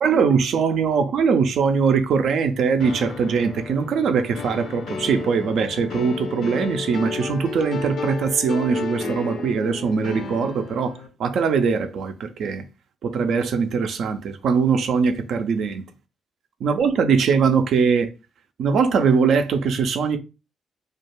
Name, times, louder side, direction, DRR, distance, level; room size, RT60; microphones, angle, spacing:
voice 1, 0.0-12.6 13.0-15.8 16.6-18.1 18.6-20.2, right 5 dB, 70° right, 0.4 m, -21 dB
sound 1, 2.8-11.1, left 4 dB, 70° left, 0.5 m, -32 dB
2.4 x 2.2 x 3.0 m
supercardioid pair, 50°, 0 cm